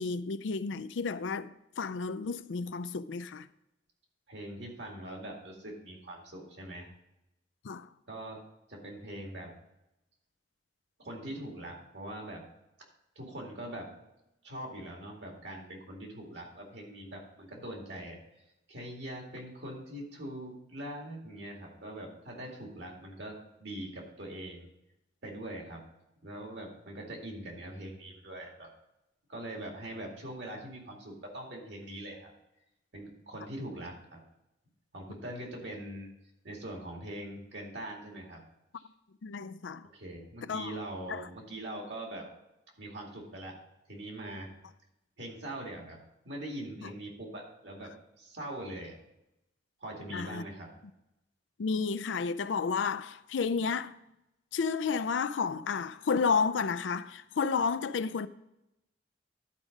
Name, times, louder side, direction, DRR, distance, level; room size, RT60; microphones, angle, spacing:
voice 1, 0.0-3.5 7.6-7.9 39.2-39.9 40.5-40.7 41.1-41.2 46.8-46.9 50.1-50.4 51.6-54.0 54.5-58.3, left 5 dB, 90° left, 0.5 m, -31 dB
voice 2, 4.3-6.9 8.1-8.4 8.7-9.5 11.0-12.5 13.2-13.9 14.4-18.2 18.7-24.7 25.2-25.8 26.2-28.7 29.3-32.3 32.9-34.2 34.9-36.1 36.4-38.4 38.8-38.9 39.9-42.3 42.8-43.6 43.9-44.5 45.2-49.0 49.8-50.7, right 1 dB, 70° right, 2.4 m, -42 dB
11.5 x 4.9 x 5.2 m
head